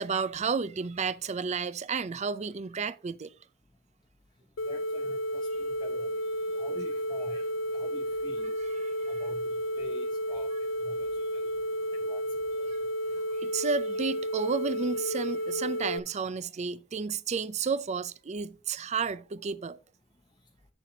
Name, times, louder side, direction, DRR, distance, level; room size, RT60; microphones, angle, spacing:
voice 1, 0.0-3.3 8.8-9.1 12.7-12.8 13.4-19.8, right 5 dB, 35° right, 0.4 m, -32 dB
sound 1, 4.6-16.0, equal, 70° left, 0.5 m, -32 dB
voice 2, 4.6-6.2 6.6-8.5 9.1-10.5 10.8-11.5 12.0-12.2, left 1 dB, 20° left, 0.7 m, -47 dB
9.1 x 7.0 x 2.7 m
head